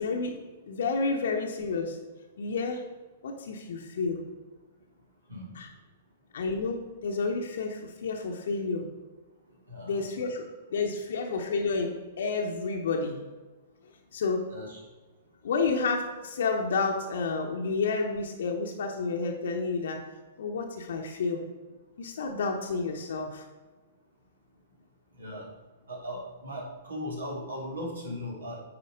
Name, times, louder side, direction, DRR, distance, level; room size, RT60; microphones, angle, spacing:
voice 1, 0.0-2.0 2.4-2.9 3.2-4.2 5.5-5.7 6.3-8.9 9.8-10.4 10.7-13.2 14.1-14.5 15.4-20.0 20.4-21.4 22.0-23.4, left 4 dB, 60° left, 2 dB, 0.9 m, -30 dB
voice 2, 9.7-10.1 14.5-14.8 25.2-25.5 25.9-28.6, equal, 70° right, -2 dB, 2.6 m, -38 dB
9.6 x 4.6 x 4.9 m, 1.3 s
figure-of-eight pair, 105°, 0 cm